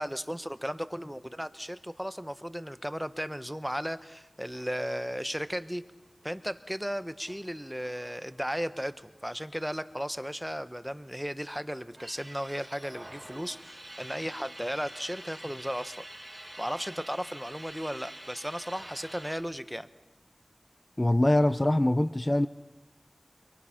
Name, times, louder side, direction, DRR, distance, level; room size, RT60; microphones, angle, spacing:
voice 1, 0.0-5.8 6.2-16.0 16.6-19.9, equal, 5° right, 12 dB, 1.0 m, -35 dB
sound 1, 4.5-9.6 9.9-10.0 10.2-11.2 11.6-19.4, right 1 dB, 25° right, 4.3 m, -48 dB
voice 2, 21.0-22.5, left 1 dB, 25° left, 11 dB, 0.6 m, -23 dB
25.0 x 23.0 x 5.8 m, 1.1 s
wide cardioid pair, 45°, 0 cm